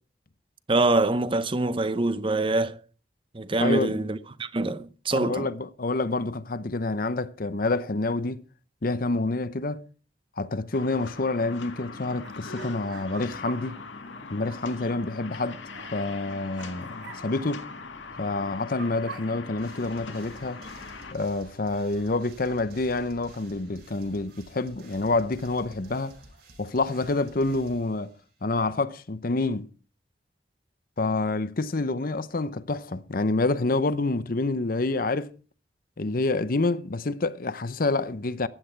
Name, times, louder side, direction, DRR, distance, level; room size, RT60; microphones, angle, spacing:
voice 1, 0.7-2.8 3.3-5.5, right 2 dB, 30° right, 0.7 m, -25 dB
voice 2, 3.6-4.0 5.1-8.4 8.8-9.8 10.4-13.8 14.3-15.6 15.9-17.7 18.2-20.6 21.1-26.2 26.6-28.1 28.4-29.7 31.0-35.3 36.0-38.5, left 2 dB, 50° left, 0.8 m, -27 dB
sound 1, 10.7-21.1, left 3 dB, 85° left, 1.8 m, -41 dB
sound 2, 11.7-11.8 12.1-18.3 18.5-20.7 21.1-25.0 25.3-27.6, right 5 dB, 75° right, 2.3 m, -50 dB
sound 3, 19.6-28.4, right 1 dB, 55° right, 7.8 m, -51 dB
15.0 x 10.0 x 4.5 m
head